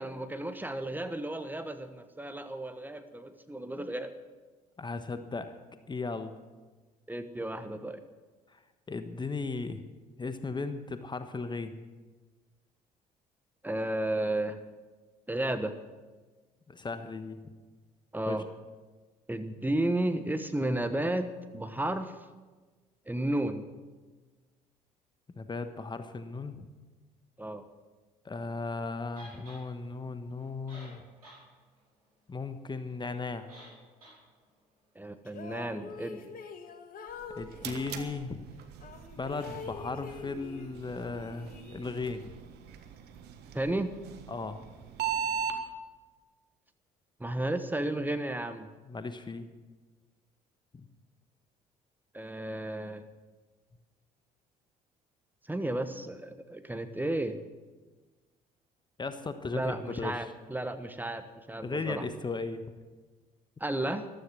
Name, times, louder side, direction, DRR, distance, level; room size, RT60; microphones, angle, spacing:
voice 1, 0.0-4.1 7.1-8.0 13.6-14.6 15.3-15.8 18.1-18.5 19.3-22.1 23.1-23.6 27.4-27.6 34.9-36.2 43.5-43.9 47.2-48.7 52.1-53.0 55.5-57.4 59.5-62.1 63.6-64.1, right 1 dB, 10° right, 9 dB, 1.2 m, -33 dB
voice 2, 4.8-5.6 5.9-6.3 8.9-9.8 10.2-11.7 16.7-17.4 18.3-18.4 25.4-26.6 28.2-31.0 32.3-33.5 37.3-38.5 39.2-42.2 44.3-44.6 48.9-49.5 50.7-50.9 59.0-60.2 61.6-62.6, left 3 dB, 25° left, 10 dB, 1.1 m, -36 dB
sound 1, 29.2-29.6 30.4-30.5 30.7-31.4 31.8-31.9 33.5-33.7 34.0-34.2, right 1 dB, 90° right, 5.1 m, -50 dB
sound 2, 35.3-38.1 38.8-40.8 41.1-42.2, left 6 dB, 50° left, 1.7 m, -45 dB
sound 3, 37.1-45.6, right 7 dB, 60° right, 1.4 m, -40 dB
14.5 x 13.0 x 6.3 m, 1.3 s
figure-of-eight pair, 50°, 19 cm